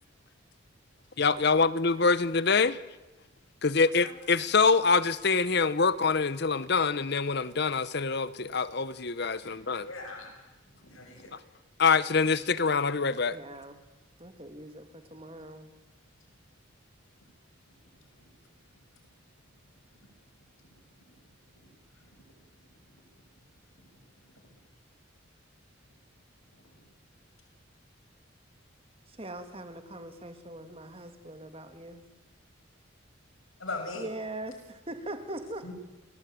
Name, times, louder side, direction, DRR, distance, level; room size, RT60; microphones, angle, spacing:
voice 1, 1.2-2.8 3.6-9.9 11.8-13.4, left 4 dB, 50° left, 0.8 m, -25 dB
voice 2, 9.8-10.3 10.9-11.3 33.6-34.0 35.6-35.7, left 3 dB, 75° left, 6.5 m, -39 dB
voice 3, 13.3-13.8 14.2-15.7 29.1-32.0 34.0-35.7, right 1 dB, 30° right, 2.5 m, -41 dB
29.5 x 19.5 x 9.2 m
head